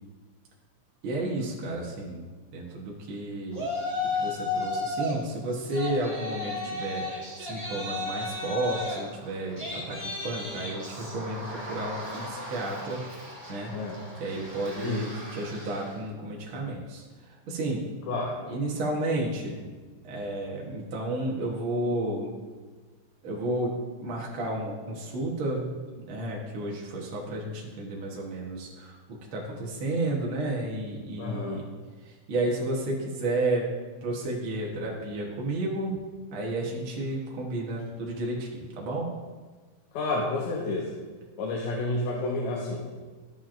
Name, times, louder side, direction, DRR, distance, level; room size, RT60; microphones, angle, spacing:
voice 1, 1.0-2.2 2.5-3.7 4.1-7.0 7.4-13.2 13.5-13.7 14.2-17.8 18.5-19.7 20.0-22.3 23.2-23.7 24.0-31.7 32.0-33.7 34.0-36.0 36.3-39.1, right 2 dB, 55° right, -2 dB, 1.6 m, -32 dB
Yell, 3.5-5.2 5.5-16.0, left 2 dB, 25° right, 0.7 m, -35 dB
voice 2, 13.7-14.0 14.8-15.1 18.1-18.4 31.2-31.6 39.9-40.9 41.4-42.8, left 2 dB, 75° left, -1 dB, 2.1 m, -30 dB
13.0 x 7.3 x 2.5 m, 1.4 s
omnidirectional pair, 3.4 m